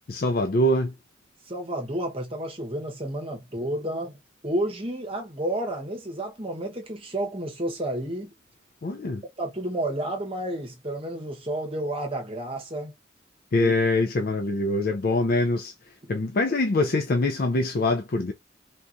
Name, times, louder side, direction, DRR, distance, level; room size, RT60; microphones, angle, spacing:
voice 1, 0.1-0.9 8.8-9.2 13.5-18.3, left 2 dB, 50° left, 0.4 m, -24 dB
voice 2, 1.4-4.2 4.4-8.3 9.4-12.9 13.6-13.7 16.0-16.1, right 1 dB, 30° right, 1.0 m, -31 dB
3.6 x 2.9 x 2.5 m
head